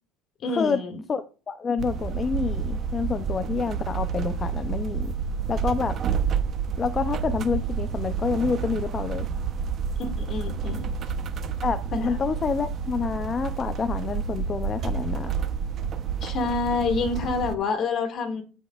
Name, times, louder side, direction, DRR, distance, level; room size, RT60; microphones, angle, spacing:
voice 1, 0.4-1.0 10.0-10.9 11.9-12.2 16.2-18.4, left 4 dB, 40° left, 5 dB, 2.0 m, -27 dB
voice 2, 1.1-5.1 5.5-6.0 6.8-9.3 11.6-15.3, left 5 dB, 25° left, 9 dB, 0.5 m, -28 dB
sound 1, 1.8-17.5, right 6 dB, 40° right, 0.8 m, -29 dB
14.0 x 5.3 x 2.4 m, 0.36 s
cardioid pair, 130°, 0 cm